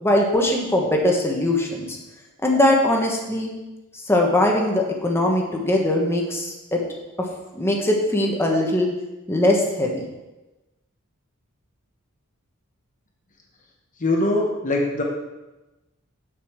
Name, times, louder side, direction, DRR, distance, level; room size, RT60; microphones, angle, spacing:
voice 1, 0.0-2.0 2.4-3.5 4.1-6.8 7.2-7.3 7.5-8.9 9.3-10.0, left 1 dB, 10° left, 0 dB, 1.3 m, -21 dB
voice 2, 14.0-15.0, left 2 dB, 40° left, 0 dB, 1.0 m, -22 dB
7.4 x 5.4 x 6.6 m, 1.0 s
head